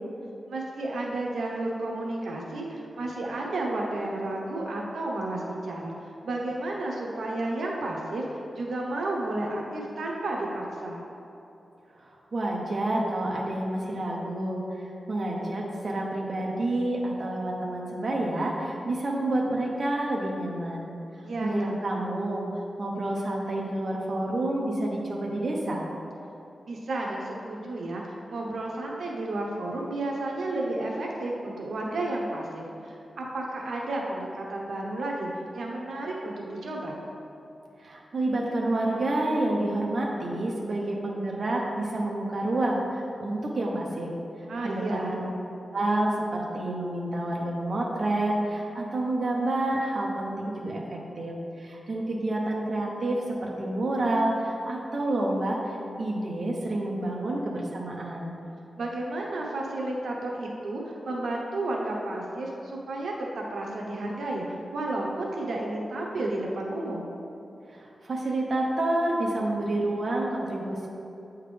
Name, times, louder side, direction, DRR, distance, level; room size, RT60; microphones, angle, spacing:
voice 1, 0.5-6.0 6.2-11.0 21.2-21.8 26.7-36.9 44.5-45.2 58.8-67.1, right 2 dB, 85° right, -2 dB, 0.8 m, -32 dB
voice 2, 12.0-20.9 21.4-22.4 22.8-25.8 37.8-44.1 44.6-45.2 45.7-58.3 67.7-70.9, right 1 dB, 50° right, -2 dB, 0.7 m, -29 dB
8.6 x 3.6 x 3.3 m, 2.9 s
wide cardioid pair, 125°, 0 cm